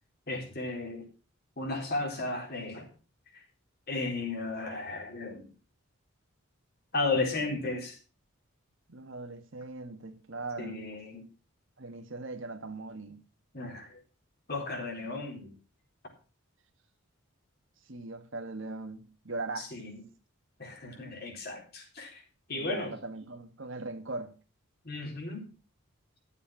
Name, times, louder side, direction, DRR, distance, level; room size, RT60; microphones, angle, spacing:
voice 1, 0.3-1.0 1.6-2.9 3.9-5.5 6.9-8.0 10.6-11.2 13.5-14.0 14.5-15.5 19.6-20.0 20.6-22.2 22.5-22.9 24.8-25.5, left 3 dB, 45° left, 3.9 m, -34 dB
voice 2, 8.9-10.9 11.8-13.2 17.9-19.7 22.5-24.3, right 3 dB, 60° right, 1.6 m, -40 dB
12.5 x 7.2 x 6.1 m
head